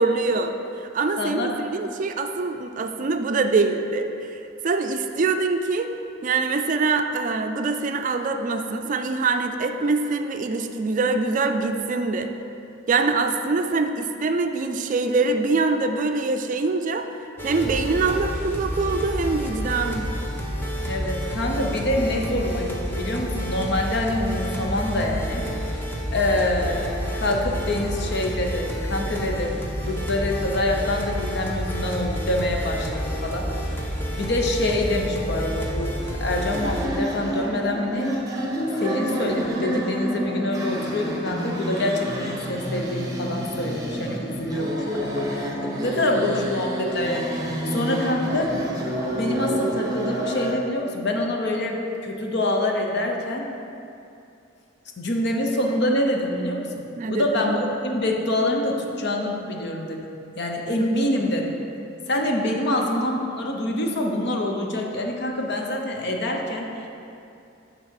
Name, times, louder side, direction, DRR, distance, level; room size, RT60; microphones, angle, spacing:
voice 1, 0.0-5.9 6.2-12.3 12.9-17.1 17.4-20.1 57.0-57.5 60.7-61.0, right 3 dB, 40° right, 6 dB, 0.4 m, -24 dB
voice 2, 1.2-1.5 20.9-25.5 26.1-33.5 34.2-38.1 38.8-48.6 49.2-53.5 55.0-56.8 57.1-60.1 60.4-61.6 62.1-66.9, left 1 dB, 60° left, 1 dB, 0.9 m, -26 dB
sound 1, 17.4-36.9, equal, 10° left, 0.9 m, -29 dB
sound 2, 36.5-50.5, equal, 20° right, 1.0 m, -29 dB
8.1 x 4.0 x 6.4 m, 2.7 s
head